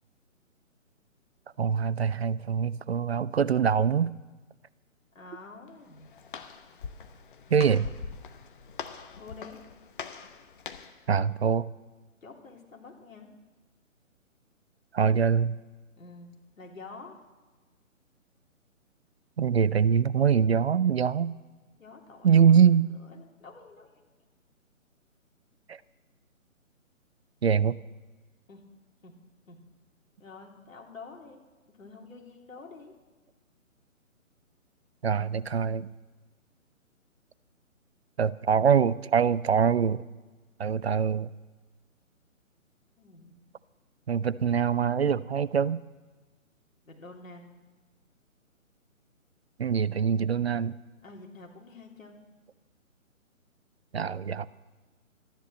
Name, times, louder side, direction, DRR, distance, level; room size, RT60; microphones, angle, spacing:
voice 1, 1.6-4.1 7.5-7.9 11.1-11.7 14.9-15.6 19.4-21.3 22.2-22.9 25.7-25.8 27.4-27.8 35.0-35.9 38.2-40.0 40.6-41.3 44.1-45.8 49.6-50.8 53.9-54.5, right 7 dB, 50° right, 18 dB, 0.5 m, -24 dB
voice 2, 5.1-6.1 9.2-9.6 12.2-13.3 15.9-17.2 21.8-22.5 23.0-24.1 28.5-28.6 29.0-29.2 29.5-29.6 30.2-32.9 43.0-43.5 46.8-47.5 51.0-52.2, left 3 dB, 70° left, 1 dB, 3.1 m, -48 dB
Walk footsteps, 5.7-11.0, left 6 dB, 40° left, 1.0 m, -43 dB
13.5 x 10.5 x 7.6 m, 1.3 s
figure-of-eight pair, 145°, 41 cm